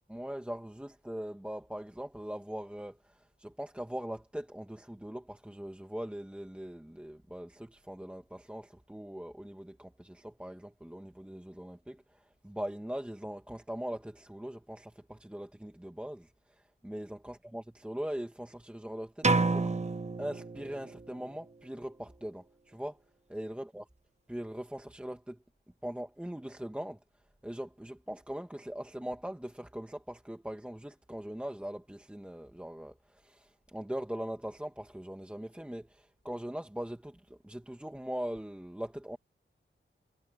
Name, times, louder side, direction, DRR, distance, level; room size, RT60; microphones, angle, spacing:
voice 1, 0.1-19.7 20.2-23.0 23.3-23.8 24.3-25.4 25.8-27.0 27.4-39.2, equal, 5° right, 1.5 m, -41 dB
sound 1, 19.2-21.1, right 3 dB, 35° right, 1.1 m, -29 dB
wide cardioid pair, 170°, 20 cm